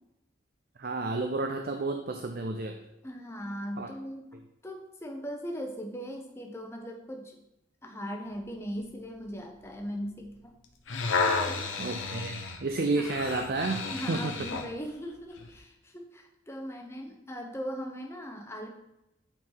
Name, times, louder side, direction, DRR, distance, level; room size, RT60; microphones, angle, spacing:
voice 1, 0.8-2.8 3.8-3.9 11.8-14.5, right 3 dB, 50° right, 5 dB, 0.5 m, -31 dB
voice 2, 3.0-4.3 4.6-7.4 7.8-10.5 11.2-11.6 12.9-13.1 13.9-18.7, equal, 15° left, 2 dB, 0.8 m, -39 dB
sound 1, 10.6-14.7 15.4-15.5, left 4 dB, 75° left, 0.9 m, -32 dB
8.9 x 4.5 x 4.0 m, 0.88 s
head